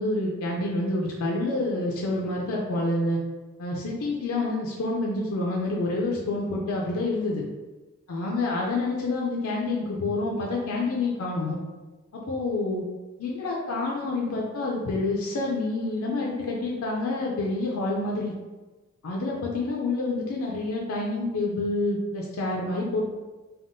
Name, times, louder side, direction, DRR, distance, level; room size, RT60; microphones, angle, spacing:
voice 1, 0.0-3.2 3.6-7.4 8.1-11.6 12.1-12.8 13.2-18.3 19.0-23.1, left 2 dB, 75° left, -2 dB, 0.4 m, -28 dB
3.4 x 2.1 x 2.6 m, 1.2 s
head